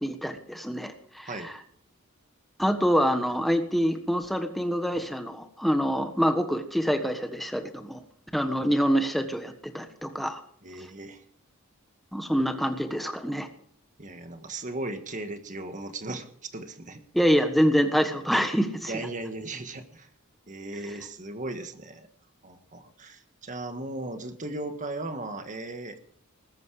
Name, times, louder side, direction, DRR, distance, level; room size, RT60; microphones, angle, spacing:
voice 1, 0.0-1.5 2.6-8.0 8.3-10.4 12.1-13.5 17.1-18.9, equal, ahead, 7 dB, 1.4 m, -26 dB
voice 2, 10.6-11.2 14.0-17.0 17.3-17.4 18.9-20.1 20.5-22.1 22.4-26.0, right 2 dB, 35° right, 8 dB, 1.6 m, -37 dB
20.0 x 10.5 x 5.0 m, 0.62 s
head